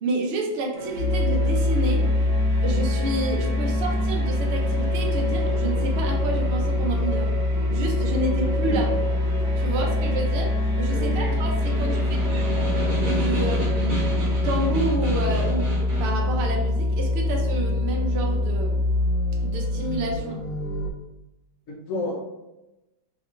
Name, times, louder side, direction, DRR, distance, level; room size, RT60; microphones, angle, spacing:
voice 1, 0.0-2.1 2.6-7.3 7.7-8.9 9.6-12.5 13.0-18.8 19.4-20.4, right 2 dB, 80° right, -1 dB, 0.5 m, -29 dB
sound 1, 0.7-14.8, right 1 dB, 40° right, 1.2 m, -33 dB
sound 2, 1.0-20.9, left 2 dB, 90° left, 1.3 m, -24 dB
voice 2, 10.9-12.0 21.7-22.2, left 1 dB, 60° left, -1 dB, 0.9 m, -32 dB
Snare drum, 11.2-16.2, right 2 dB, 65° right, 1.4 m, -31 dB
3.4 x 2.8 x 2.4 m, 0.96 s
omnidirectional pair, 1.9 m